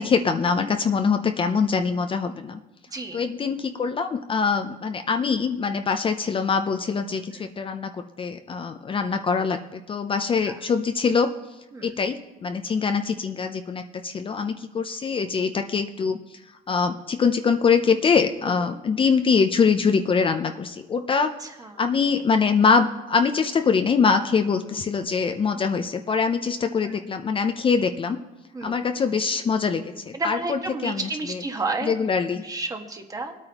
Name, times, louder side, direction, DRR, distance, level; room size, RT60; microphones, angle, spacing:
voice 1, 0.0-2.6 3.1-11.3 11.8-16.2 16.7-21.3 21.8-28.2 28.6-31.4 31.8-32.4, left 5 dB, 30° left, 7 dB, 0.6 m, -23 dB
voice 2, 21.4-21.8 28.5-28.8 30.1-31.9 32.4-33.4, right 3 dB, 20° right, 4 dB, 1.4 m, -31 dB
20.5 x 8.8 x 3.0 m, 1.0 s
cardioid pair, 110°, 17 cm